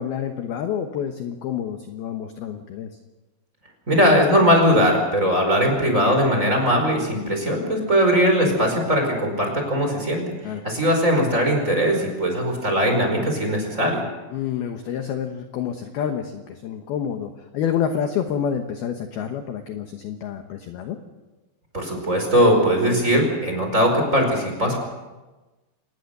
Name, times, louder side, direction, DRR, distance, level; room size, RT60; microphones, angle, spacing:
voice 1, 0.0-2.9 10.4-10.6 14.3-21.0, left 8 dB, 70° left, 6 dB, 2.4 m, -28 dB
voice 2, 3.9-14.0 21.7-24.8, equal, 15° right, 2 dB, 4.8 m, -20 dB
26.5 x 20.0 x 6.8 m, 1.2 s
omnidirectional pair, 5.9 m